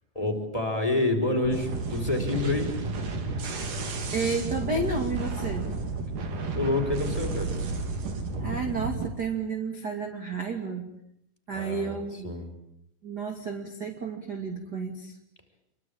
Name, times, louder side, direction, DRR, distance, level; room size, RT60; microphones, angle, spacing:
voice 1, 0.1-2.7 6.5-7.6 11.5-12.0 12.2-12.5, left 2 dB, 10° left, 5 dB, 5.0 m, -28 dB
sound 1, 1.4-9.1, right 3 dB, 65° right, 4.4 m, -32 dB
voice 2, 4.1-5.7 8.4-10.9 11.5-12.3 13.0-15.1, right 4 dB, 30° right, 4 dB, 2.6 m, -31 dB
27.5 x 24.0 x 8.9 m, 0.76 s
omnidirectional pair, 4.1 m